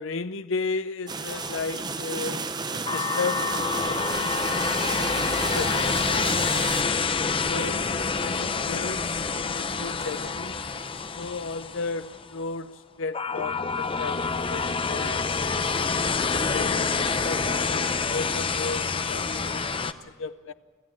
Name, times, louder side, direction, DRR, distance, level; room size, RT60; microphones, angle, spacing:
voice 1, 0.0-5.1 5.5-6.5 7.5-10.6 11.2-15.4 16.0-20.5, left 4 dB, 80° left, 0.7 m, -35 dB
sound 1, 1.1-6.8, right 4 dB, 20° right, 0.8 m, -32 dB
sound 2, 1.3-2.1 2.9-12.4 13.1-19.9, left 4 dB, 25° left, 0.7 m, -27 dB
25.5 x 14.0 x 8.7 m
head